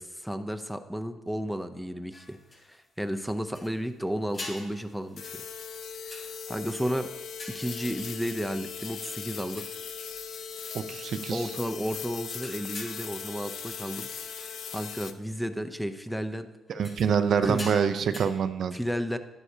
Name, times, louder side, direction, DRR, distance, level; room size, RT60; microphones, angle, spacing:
voice 1, 0.2-2.4 2.6-5.4 6.0-7.1 7.5-9.7 11.3-14.1 14.4-16.5 17.4-17.6 18.7-19.2, equal, ahead, 9 dB, 0.6 m, -33 dB
sound 1, 2.1-3.0 3.5-3.9 4.3-6.7 7.3-8.5 8.8-9.9 10.4-11.0 11.6-11.7 11.9-12.1 12.4-13.9 14.3-14.6 15.0-15.1 16.7-18.3, left 2 dB, 30° left, 3.5 m, -46 dB
sound 2, 5.2-15.1, left 6 dB, 65° left, 0.6 m, -39 dB
voice 2, 10.7-11.5 16.7-18.8, right 7 dB, 60° right, 10 dB, 0.5 m, -26 dB
10.5 x 9.6 x 2.8 m, 1.1 s
cardioid pair, 90°, 0 cm